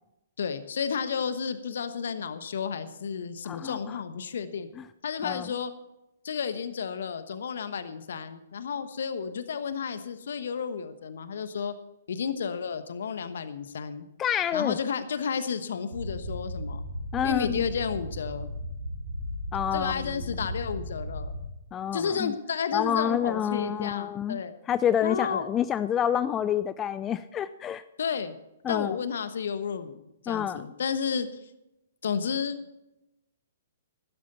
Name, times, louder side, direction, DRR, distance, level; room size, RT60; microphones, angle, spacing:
voice 1, 0.4-4.7 5.0-5.7 6.2-11.7 12.1-14.1 14.5-16.8 17.2-18.5 19.7-21.3 21.9-24.5 25.0-25.4 28.0-28.4 28.7-31.4 32.0-32.8, left 6 dB, 60° left, 11 dB, 1.2 m, -32 dB
voice 2, 3.4-3.8 5.2-5.4 14.2-14.8 17.1-17.6 19.5-20.0 21.7-22.3 22.7-24.4 24.7-27.8 28.6-29.0 30.3-30.6, left 9 dB, 20° left, 15 dB, 0.4 m, -28 dB
sound 1, 15.9-21.5, left 1 dB, 75° right, 4.3 m, -36 dB
14.5 x 13.0 x 4.2 m, 0.90 s
figure-of-eight pair, 120°, 0 cm